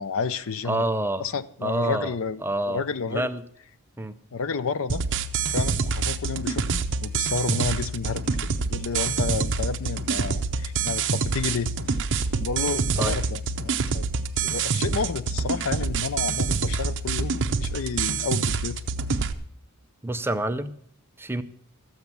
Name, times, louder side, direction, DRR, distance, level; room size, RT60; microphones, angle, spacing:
voice 1, 0.0-0.9 1.2-3.3 4.3-5.0 5.4-12.0 12.4-14.1 14.4-18.8, left 5 dB, 65° left, 0.6 m, -31 dB
voice 2, 0.6-1.3 1.6-2.1 2.4-3.4 4.0-4.1 13.0-13.1 20.0-20.8 21.2-21.4, right 1 dB, 10° right, 0.5 m, -27 dB
sound 1, 4.9-19.3, right 4 dB, 55° right, 0.8 m, -26 dB
13.0 x 8.0 x 6.9 m
head